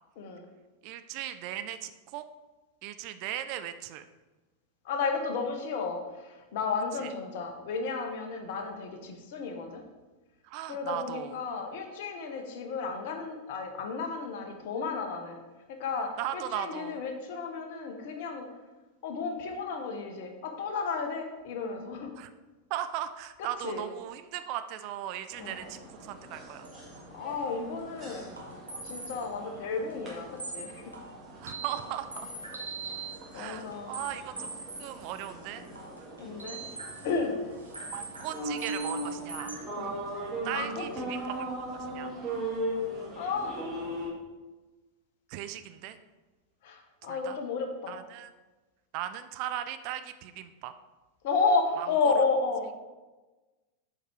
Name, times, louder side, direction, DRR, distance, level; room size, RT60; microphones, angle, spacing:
voice 1, 0.8-2.3 2.8-4.0 7.0-7.1 10.4-11.4 16.2-17.0 22.2-22.3 22.7-26.7 31.4-32.3 33.2-34.5 34.8-35.6 37.9-39.6 40.4-41.5 41.9-42.1 45.3-46.0 47.1-47.4 47.9-48.3 48.9-50.7 51.8-52.1, right 11 dB, 45° right, 10 dB, 0.4 m, -37 dB
voice 2, 4.8-9.8 10.7-15.4 15.7-18.5 19.0-22.1 23.4-23.8 25.4-25.6 27.1-28.3 28.8-30.9 33.3-34.0 36.2-36.6 37.0-37.3 39.8-40.0 40.5-41.2 43.2-43.6 46.6-48.0 51.2-52.7, left 4 dB, 50° left, 4 dB, 1.1 m, -32 dB
sound 1, 25.3-44.1, right 1 dB, 20° right, 2.3 m, -39 dB
sound 2, 26.6-27.0 27.3-27.4 27.8-27.9 28.4-29.3 29.5-29.6 30.1-30.2 30.4-37.2 37.6-39.6, right 3 dB, 80° right, 1.3 m, -42 dB
7.7 x 4.8 x 4.5 m, 1.2 s
figure-of-eight pair, 90°, 0 cm